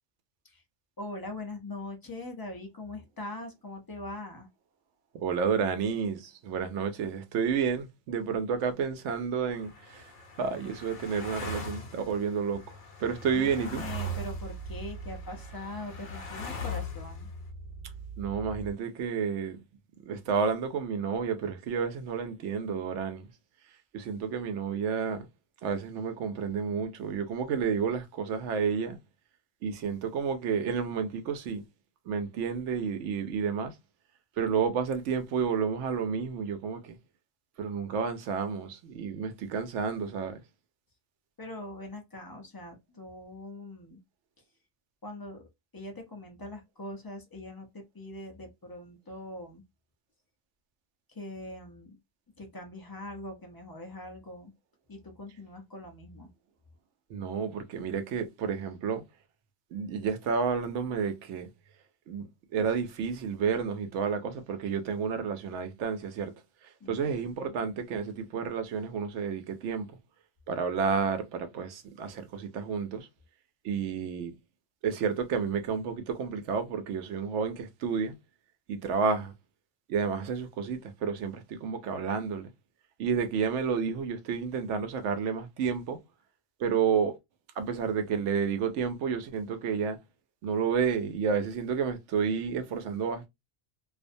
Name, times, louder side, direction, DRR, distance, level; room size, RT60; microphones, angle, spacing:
voice 1, 1.0-4.5 13.2-17.3 41.4-44.0 45.0-45.4 45.7-49.6 51.1-52.0 52.4-54.5 54.9-56.3 66.8-67.6, left 2 dB, 30° left, 0.4 m, -42 dB
voice 2, 5.1-10.1 10.4-12.6 13.0-13.8 18.2-19.6 20.1-23.3 23.9-25.3 25.6-29.0 29.6-31.6 32.1-33.7 34.4-37.0 37.6-40.4 57.1-59.0 59.7-61.5 62.1-66.3 66.9-69.9 70.5-73.1 73.6-74.3 74.8-78.1 78.7-79.3 79.9-82.5 83.0-86.0 86.6-87.1 87.6-90.0 90.4-93.3, right 6 dB, 85° right, 0.9 m, -30 dB
sound 1, 9.5-17.4, left 1 dB, 85° left, 0.9 m, -40 dB
sound 2, 13.3-18.7, right 3 dB, 55° left, 0.9 m, -43 dB
2.4 x 2.1 x 2.6 m
omnidirectional pair, 1.2 m